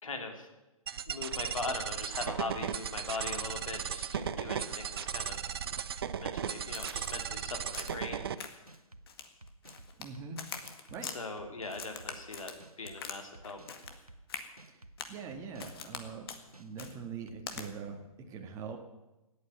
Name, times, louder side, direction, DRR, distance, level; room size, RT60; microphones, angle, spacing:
voice 1, 0.0-0.5 1.1-5.4 6.1-8.3 11.0-12.5 12.8-13.6, left 3 dB, 65° left, 4 dB, 3.1 m, -40 dB
sound 1, 0.9-8.4, right 8 dB, 40° right, 0.7 m, -36 dB
sound 2, 2.3-2.4 2.8-3.2 3.5-4.4 4.7-5.1 5.5-6.3 6.7-7.1 7.4-8.3 8.7-9.0 9.4-10.3 10.6-11.0 11.4-12.2 12.6-13.0 13.3-14.2 14.6-14.9 15.3-16.2 16.5-16.9 17.3-17.8, right 2 dB, 90° right, 1.1 m, -53 dB
Crack, 6.7-7.3 7.7-8.1 8.4-8.8 9.1-10.1 10.4-11.2 11.7-13.2 13.4-14.0 14.3-14.5 15.0-15.2 15.6-16.0 16.3-16.4 16.8-16.9 17.5-17.7, left 6 dB, 40° left, 1.8 m, -43 dB
voice 2, 10.0-10.4 10.9-11.1 14.7-14.8 15.1-16.3 16.6-18.8, right 6 dB, 15° right, 3 dB, 1.8 m, -43 dB
18.0 x 8.8 x 9.1 m, 1.0 s
figure-of-eight pair, 130°, 19 cm